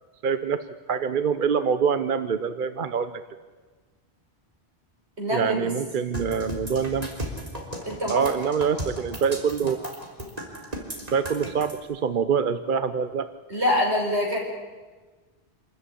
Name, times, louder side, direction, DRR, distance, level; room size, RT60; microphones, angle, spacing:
voice 1, 0.2-0.6 0.9-3.2 5.3-7.1 8.1-9.8 11.1-13.3, right 6 dB, 50° right, 11 dB, 1.0 m, -25 dB
voice 2, 5.2-5.7 7.8-8.2 13.5-14.4, left 1 dB, 85° right, -1 dB, 6.2 m, -25 dB
sound 1, 6.1-11.7, right 1 dB, 35° right, 3.7 m, -34 dB
27.5 x 14.0 x 10.0 m, 1.3 s
omnidirectional pair, 1.1 m